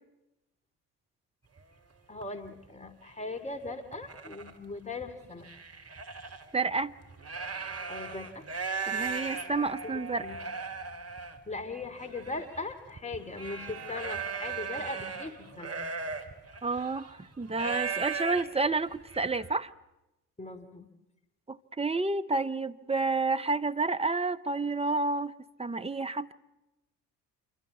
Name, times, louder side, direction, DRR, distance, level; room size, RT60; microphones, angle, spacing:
sound 1, 1.6-1.7 2.2-2.5 3.1-3.2 3.7-4.5 5.0-6.4 7.0-19.5, right 5 dB, 30° right, 3.3 m, -37 dB
voice 1, 2.1-5.5 7.9-8.4 9.8-10.4 11.5-15.8 20.4-20.9, left 3 dB, 15° left, 11 dB, 2.7 m, -39 dB
voice 2, 6.5-6.9 8.9-10.3 16.6-19.7 21.5-25.3 25.6-26.3, right 3 dB, 15° right, 10 dB, 1.0 m, -30 dB
27.0 x 24.0 x 8.3 m, 0.95 s
hypercardioid pair, 55°, 47 cm